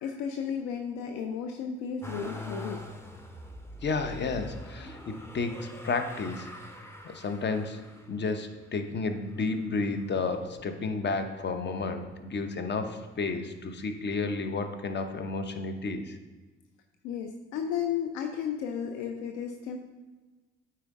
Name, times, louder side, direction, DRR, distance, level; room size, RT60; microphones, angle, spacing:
voice 1, 0.0-2.8 17.0-19.8, left 7 dB, 65° left, 5 dB, 0.6 m, -33 dB
Motor vehicle (road), 2.0-11.1 11.7-12.6 12.8-13.9 15.0-15.1, left 1 dB, 10° left, 0.9 m, -45 dB
voice 2, 3.8-6.5 7.0-7.8 8.1-16.2, left 4 dB, 35° left, 8 dB, 0.9 m, -32 dB
8.7 x 4.5 x 3.7 m, 1.3 s
figure-of-eight pair, 45°, 32 cm